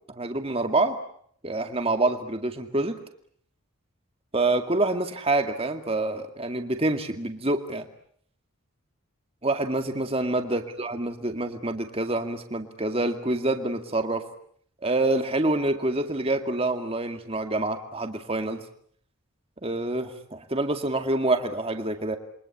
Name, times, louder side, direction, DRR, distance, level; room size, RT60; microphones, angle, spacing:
voice 1, 0.1-1.0 1.4-3.0 4.3-7.9 9.4-14.2 14.8-18.6 19.6-22.2, right 2 dB, 25° right, 6 dB, 2.2 m, -26 dB
28.5 x 23.5 x 8.7 m, 0.64 s
head